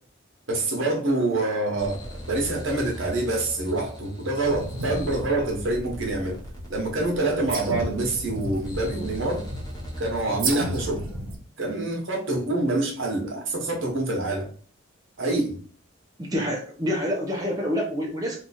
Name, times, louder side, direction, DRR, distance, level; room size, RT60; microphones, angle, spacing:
voice 1, 0.5-6.4 6.7-9.4 10.0-11.0 11.6-14.5 15.2-15.6, right 2 dB, 70° right, 1 dB, 1.0 m, -26 dB
sound 1, 1.8-10.3, left 1 dB, 20° left, 0.7 m, -40 dB
sound 2, 4.4-11.4, right 2 dB, 85° right, 0.8 m, -34 dB
voice 2, 16.2-18.4, equal, 15° right, -2 dB, 0.5 m, -27 dB
2.9 x 2.3 x 4.1 m, 0.44 s
head